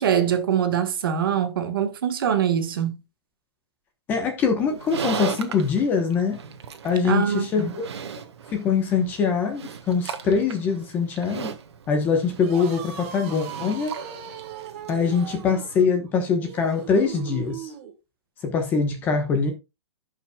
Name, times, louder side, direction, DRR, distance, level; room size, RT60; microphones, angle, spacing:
voice 1, 0.0-3.0 7.0-7.7, right 9 dB, 55° right, 1.4 m, -23 dB
voice 2, 4.1-6.4 6.8-7.8 8.5-11.5 11.9-14.0 14.9-17.7 18.4-19.5, left 5 dB, 10° left, 1.0 m, -23 dB
Livestock farm animals working animals, 4.6-15.9, right 6 dB, 75° right, 1.5 m, -38 dB
sound 1, 12.4-17.9, right 9 dB, 25° right, 1.5 m, -38 dB
15.0 x 5.6 x 2.3 m
hypercardioid pair, 180°, 14 cm